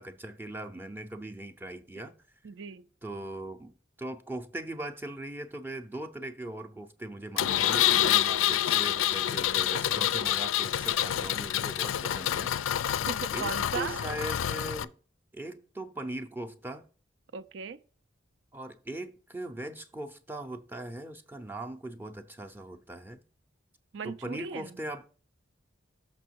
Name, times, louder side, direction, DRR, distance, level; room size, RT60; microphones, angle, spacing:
voice 1, 0.0-2.1 3.0-12.5 13.3-14.9 15.3-16.9 18.5-23.2 24.0-25.0, right 1 dB, 10° right, 0.6 m, -40 dB
voice 2, 2.4-2.9 8.1-8.7 12.8-14.0 17.3-17.8 23.9-24.7, right 6 dB, 65° right, 0.5 m, -38 dB
Engine, 7.4-14.8, left 11 dB, 80° left, 0.4 m, -27 dB
6.2 x 6.1 x 4.5 m
head